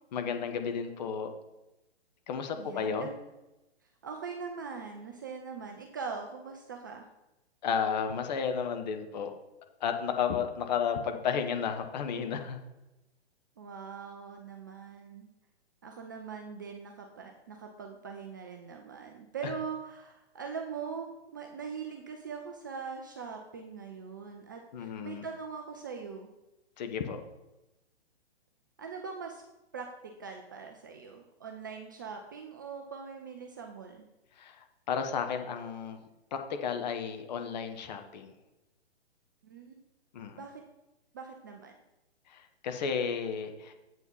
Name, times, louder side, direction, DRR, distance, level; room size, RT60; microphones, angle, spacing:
voice 1, 0.1-1.3 2.3-3.1 7.6-9.3 9.8-12.6 19.4-19.5 24.7-25.3 26.8-27.2 34.4-36.0 36.3-38.3 40.1-40.4 42.3-43.7, left 7 dB, 40° left, 6 dB, 1.0 m, -33 dB
voice 2, 2.6-3.2 4.0-7.1 13.6-15.3 15.8-26.3 28.8-29.4 29.7-29.9 30.2-34.0 39.4-39.8 40.4-40.6 41.1-41.7, right 5 dB, 20° right, 3 dB, 0.4 m, -42 dB
8.0 x 4.9 x 5.4 m, 0.99 s
figure-of-eight pair, 130°, 33 cm